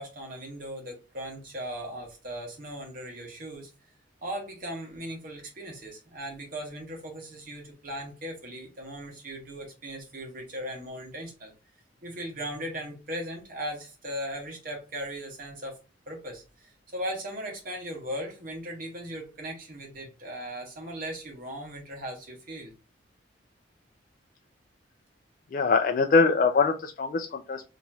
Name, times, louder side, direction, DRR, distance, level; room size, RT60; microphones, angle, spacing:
voice 1, 0.0-3.7 4.2-11.5 12.0-15.8 16.1-22.7, equal, 50° right, 1.3 m, -38 dB
voice 2, 25.5-27.6, left 4 dB, 45° left, 0.3 m, -23 dB
2.9 x 2.9 x 2.3 m
head